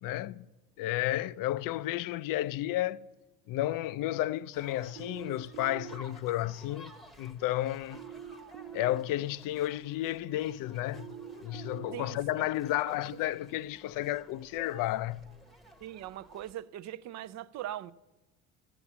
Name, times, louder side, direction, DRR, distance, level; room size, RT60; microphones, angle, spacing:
voice 1, 0.0-0.5 0.8-3.0 3.5-8.0 8.7-11.1 11.4-15.2, left 14 dB, 60° left, 0.4 m, -32 dB
sound 1, 4.5-16.5, equal, ahead, 0.9 m, -55 dB
sound 2, 5.0-5.9 7.9-8.9 10.9-11.9, right 10 dB, 85° right, 0.9 m, -44 dB
voice 2, 15.8-17.9, right 12 dB, 50° right, 0.4 m, -40 dB
12.5 x 7.0 x 7.2 m
supercardioid pair, 90°, 37 cm